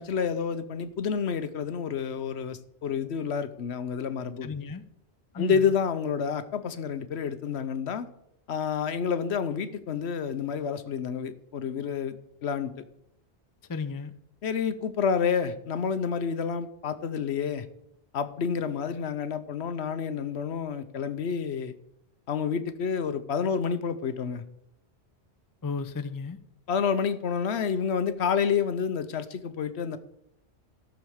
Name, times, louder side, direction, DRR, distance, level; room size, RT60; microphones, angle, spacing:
voice 1, 0.0-4.5 5.3-8.1 8.5-12.2 12.4-12.8 14.4-17.7 18.1-21.7 22.3-24.4 26.7-30.0, left 6 dB, 75° left, 12 dB, 1.1 m, -29 dB
voice 2, 4.4-4.8 5.3-5.7 13.7-14.1 25.6-26.4, left 4 dB, 25° left, 9 dB, 0.5 m, -34 dB
14.0 x 6.4 x 6.5 m, 0.78 s
omnidirectional pair, 1.1 m